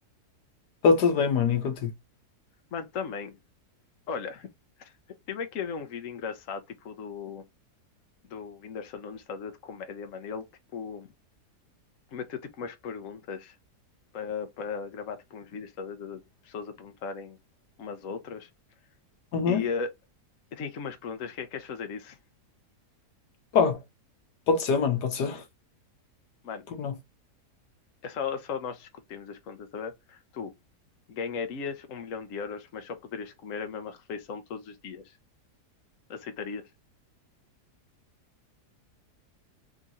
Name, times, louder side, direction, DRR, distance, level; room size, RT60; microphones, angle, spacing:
voice 1, 0.8-1.9 19.3-19.6 23.5-23.8 24.5-25.4 26.8-26.9, left 5 dB, 80° left, 1.6 m, -23 dB
voice 2, 2.7-3.4 4.1-4.5 4.8-4.9 5.3-7.4 8.3-10.5 10.7-11.1 12.1-13.5 14.1-17.4 17.8-18.5 19.5-19.9 20.5-22.2 26.4-26.7 28.0-30.5 31.1-35.2 36.1-36.6, left 6 dB, 60° left, 1.2 m, -37 dB
3.7 x 2.9 x 3.8 m
omnidirectional pair, 1.7 m